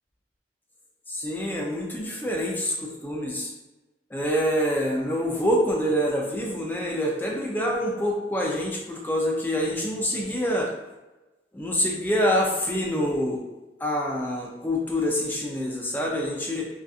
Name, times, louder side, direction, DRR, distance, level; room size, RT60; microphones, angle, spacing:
voice 1, 1.1-3.5 4.1-10.7 11.5-13.4 13.8-16.7, equal, 10° left, -1 dB, 0.3 m, -26 dB
2.5 x 2.4 x 2.3 m, 1.1 s
head